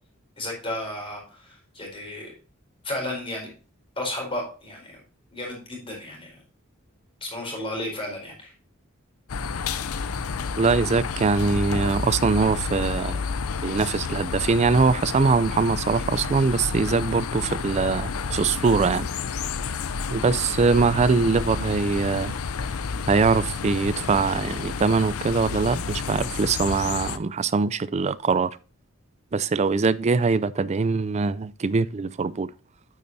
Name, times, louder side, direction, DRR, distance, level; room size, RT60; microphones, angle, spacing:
voice 1, 0.4-2.3 2.8-3.5 4.0-5.0 5.3-6.4 7.2-8.5, left 1 dB, 25° left, 4.2 m, -33 dB
sound 1, 9.3-27.2, left 5 dB, 80° left, 0.6 m, -30 dB
voice 2, 10.6-13.2 13.6-19.1 20.1-22.3 23.1-28.5 29.3-32.5, right 4 dB, 30° right, 0.4 m, -22 dB
8.8 x 8.5 x 2.7 m
head